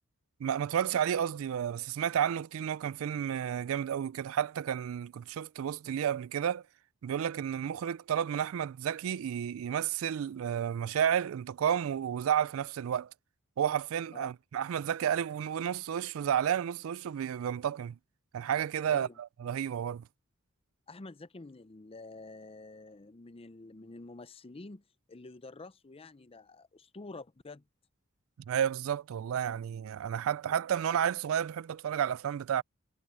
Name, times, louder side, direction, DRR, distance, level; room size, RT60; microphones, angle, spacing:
voice 1, 0.4-6.6 7.0-13.1 13.6-18.0 18.3-20.0 28.5-32.6, right 9 dB, 70° right, 0.3 m, -31 dB
voice 2, 18.9-19.2 20.9-24.8 25.1-27.6, left 2 dB, 25° left, 0.6 m, -48 dB
head